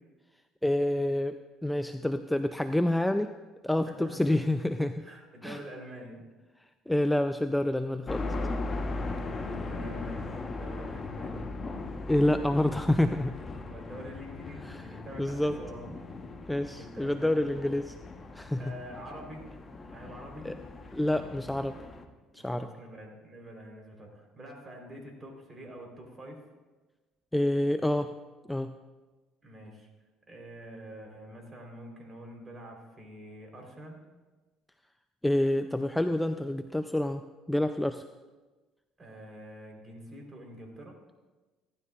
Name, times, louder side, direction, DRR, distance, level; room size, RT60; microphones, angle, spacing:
voice 1, 0.6-1.4 1.6-3.3 3.6-5.0 5.4-5.6 6.9-8.2 12.1-13.3 14.6-14.8 15.2-15.6 16.5-17.9 18.3-18.7 20.4-20.5 20.9-21.7 22.3-22.7 27.3-28.1 28.5-28.7 35.2-37.2 37.5-38.0, left 1 dB, 5° left, 9 dB, 0.5 m, -27 dB
voice 2, 3.9-4.3 5.0-6.2 9.0-11.5 13.6-15.9 16.7-17.7 18.6-19.4 19.9-20.5 22.3-26.4 29.4-29.9 30.3-34.0 39.0-40.9, right 1 dB, 25° right, 1 dB, 3.9 m, -46 dB
sound 1, 8.1-22.0, left 3 dB, 30° left, 1.2 m, -38 dB
16.5 x 12.0 x 2.5 m, 1.2 s
supercardioid pair, 75°, 0 cm